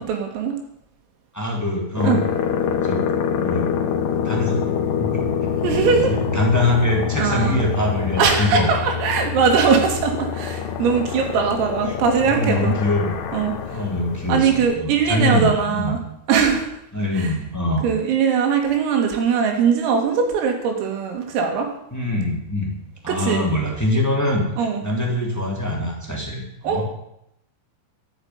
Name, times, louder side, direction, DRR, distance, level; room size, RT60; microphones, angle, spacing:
voice 1, 0.1-0.6 2.0-2.2 5.6-6.1 7.2-7.6 8.2-12.8 13.3-13.8 14.3-16.0 16.3-16.7 17.1-17.3 17.8-21.7 23.1-23.5 24.6-24.8 26.6-26.8, right 6 dB, 85° right, 3 dB, 5.0 m, -20 dB
voice 2, 1.3-2.2 2.7-3.0 3.3-3.7 4.2-4.6 5.0-5.3 5.9-8.7 11.9-12.0 12.3-13.2 13.4-15.9 16.9-17.8 21.9-22.7 23.0-24.4 24.8-26.8, left 1 dB, 5° left, -1 dB, 1.5 m, -23 dB
sound 1, 2.0-14.7, left 7 dB, 85° left, 1.9 m, -26 dB
11.5 x 8.3 x 9.6 m, 0.79 s
omnidirectional pair, 5.8 m